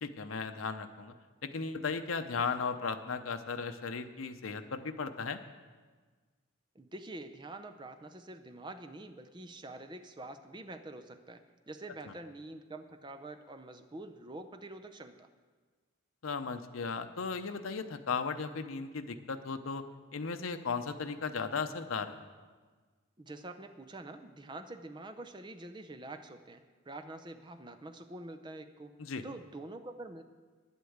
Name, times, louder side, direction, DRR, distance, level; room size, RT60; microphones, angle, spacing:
voice 1, 0.0-1.1 1.4-5.4 16.2-19.8 20.1-22.2 29.0-29.2, left 5 dB, 80° left, 8 dB, 0.7 m, -36 dB
voice 2, 6.7-15.3 23.2-28.9 29.2-30.2, right 2 dB, 20° right, 8 dB, 0.6 m, -46 dB
10.5 x 8.2 x 7.9 m, 1.4 s
head